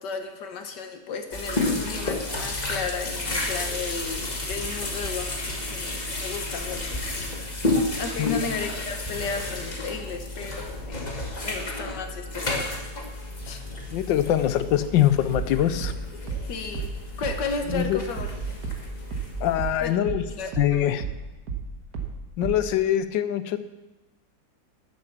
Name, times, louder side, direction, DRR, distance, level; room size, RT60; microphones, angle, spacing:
voice 1, 0.0-7.0 8.0-11.2 11.4-12.8 13.5-13.6 16.5-16.9 17.2-18.6 19.8-21.0, left 5 dB, 70° left, 6 dB, 1.9 m, -34 dB
sound 1, 1.3-19.8, left 2 dB, 25° left, 1.5 m, -31 dB
voice 2, 8.2-8.5 13.9-15.9 17.7-18.0 19.4-20.2 20.6-21.0 22.4-23.6, left 11 dB, 85° left, 12 dB, 1.4 m, -23 dB
sound 2, 15.3-20.3 20.5-22.8, right 6 dB, 65° right, 2.0 m, -33 dB
12.0 x 7.8 x 7.3 m, 1.1 s
omnidirectional pair, 2.0 m